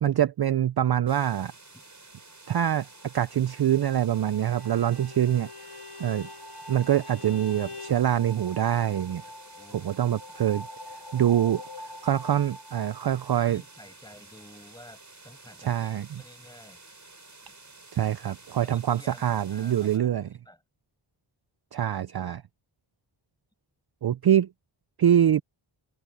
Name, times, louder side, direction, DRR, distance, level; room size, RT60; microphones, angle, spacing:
voice 1, 0.0-1.5 2.5-2.9 3.1-5.5 6.0-6.3 6.7-9.2 9.8-10.7 11.1-13.6 15.6-16.1 17.9-20.3 21.7-22.4 24.0-24.5 25.0-25.4, right 10 dB, 50° right, 0.5 m, -24 dB
sound 1, 1.1-20.0, right 3 dB, 35° right, 6.7 m, -51 dB
sound 2, 2.2-13.9, left 1 dB, 65° left, 3.0 m, -46 dB
Bowed string instrument, 4.4-8.1, left 4 dB, 85° left, 3.9 m, -44 dB
voice 2, 9.6-10.4 13.3-16.8 18.6-20.6, left 1 dB, 10° left, 7.5 m, -52 dB
wide cardioid pair, 95°, 49 cm